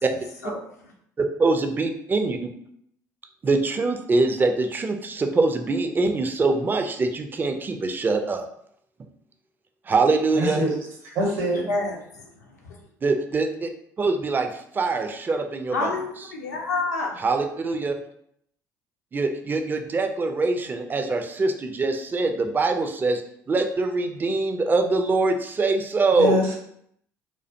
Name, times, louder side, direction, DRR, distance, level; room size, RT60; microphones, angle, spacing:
voice 1, 1.2-2.4 3.4-8.4 9.9-10.6 13.0-13.7 14.0-15.9 17.2-17.9 19.1-23.2 23.5-26.4, right 3 dB, 20° right, 5 dB, 0.3 m, -23 dB
voice 2, 10.3-10.7 11.1-11.6 26.1-26.5, equal, 65° right, -1 dB, 0.9 m, -23 dB
voice 3, 11.5-12.8 15.7-17.1, left 3 dB, 80° left, -1 dB, 0.5 m, -29 dB
2.3 x 2.2 x 2.6 m, 0.70 s
figure-of-eight pair, 55°, 9 cm